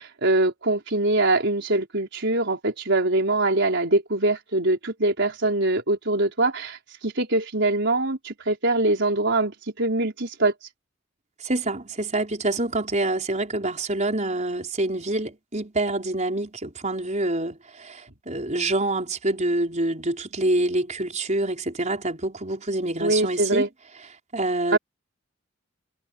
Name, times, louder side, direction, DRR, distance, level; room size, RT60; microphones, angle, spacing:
voice 1, 0.0-6.8 7.0-10.5 23.0-23.7 24.7-24.8, right 2 dB, 60° right, 5.0 m, -23 dB
voice 2, 11.4-23.6 24.3-24.8, right 2 dB, 35° right, 5.1 m, -26 dB
head